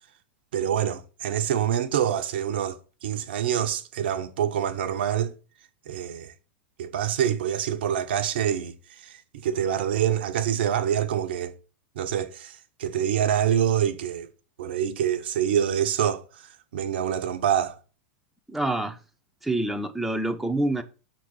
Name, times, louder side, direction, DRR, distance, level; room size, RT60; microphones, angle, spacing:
voice 1, 0.5-5.3 5.9-6.3 6.8-8.7 9.0-11.5 12.0-14.3 14.6-16.2 16.7-17.8, right 9 dB, 60° right, 0.9 m, -26 dB
voice 2, 18.5-19.0 19.4-20.8, right 1 dB, ahead, 0.8 m, -26 dB
6.5 x 3.9 x 6.3 m
figure-of-eight pair, 90°, 6 cm